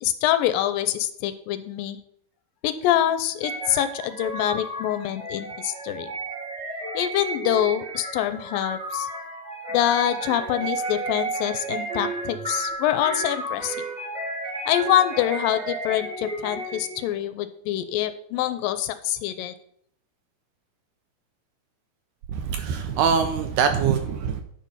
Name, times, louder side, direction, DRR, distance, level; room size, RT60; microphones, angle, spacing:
voice 1, 0.0-2.0 2.6-6.1 6.9-9.1 9.7-13.8 14.7-19.6, left 12 dB, 85° left, 11 dB, 2.3 m, -25 dB
sound 1, 3.4-17.1, right 2 dB, 60° right, 0.4 m, -32 dB
voice 2, 22.3-24.4, right 6 dB, 80° right, 6 dB, 2.0 m, -23 dB
9.6 x 5.3 x 5.5 m, 0.68 s
omnidirectional pair, 4.1 m